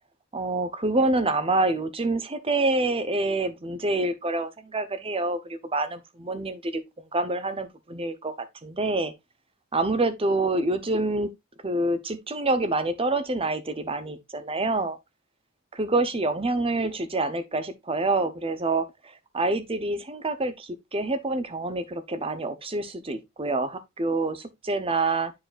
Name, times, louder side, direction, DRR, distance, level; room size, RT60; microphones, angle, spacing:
voice 1, 0.3-8.3 8.6-9.1 9.7-11.3 11.6-15.0 15.7-25.3, right 2 dB, 25° right, 0.8 m, -27 dB
11.0 x 4.8 x 2.4 m
head